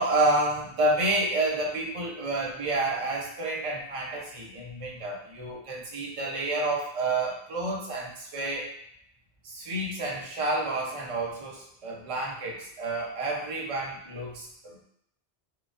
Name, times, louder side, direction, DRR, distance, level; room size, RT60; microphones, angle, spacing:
voice 1, 0.0-8.7 9.4-14.8, right 2 dB, 35° right, -2 dB, 0.7 m, -29 dB
4.5 x 2.4 x 2.5 m, 0.71 s
omnidirectional pair, 1.1 m